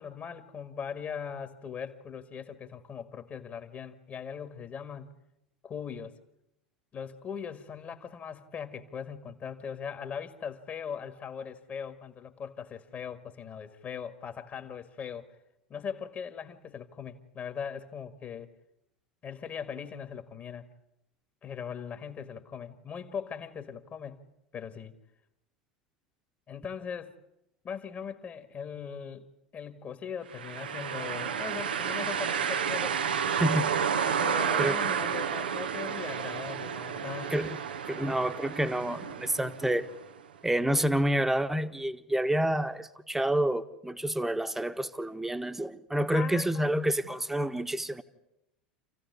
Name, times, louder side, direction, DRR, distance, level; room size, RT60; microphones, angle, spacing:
voice 1, 0.0-5.1 5.6-6.2 6.9-15.3 15.7-18.5 19.2-20.7 21.4-24.2 24.5-25.0 26.5-27.1 27.6-29.3 29.5-33.0 34.2-37.4 46.1-46.7 47.0-47.2, left 7 dB, 35° left, 9 dB, 2.0 m, -40 dB
sound 1, 30.3-40.1, right 7 dB, 75° right, 1.2 m, -31 dB
voice 2, 33.4-33.7 34.6-34.8 37.3-37.6 37.8-39.9 40.4-48.0, right 1 dB, 5° right, 10 dB, 1.4 m, -28 dB
28.0 x 15.5 x 9.7 m, 0.86 s
figure-of-eight pair, 80°, 5 cm